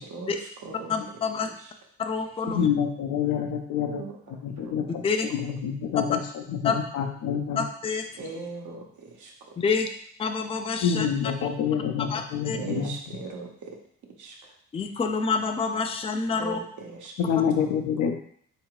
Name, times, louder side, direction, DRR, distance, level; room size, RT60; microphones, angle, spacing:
voice 1, 0.0-1.7 3.8-4.8 8.1-9.5 12.5-13.8 14.2-14.6 16.4-17.4 17.6-17.7, right 4 dB, 75° right, 0 dB, 1.1 m, -40 dB
voice 2, 0.9-1.5 2.0-2.7 5.0-5.3 6.6-6.8 7.6-8.0 9.6-9.9 10.2-11.1 11.4-11.5 12.1-12.6 14.7-16.6, left 5 dB, 20° left, 5 dB, 0.4 m, -27 dB
voice 3, 2.5-4.0 4.4-5.0 5.3-7.6 10.8-12.9 17.2-18.1, left 7 dB, 80° left, 4 dB, 0.7 m, -27 dB
3.8 x 2.9 x 4.6 m, 0.63 s
cardioid pair, 90°, 30 cm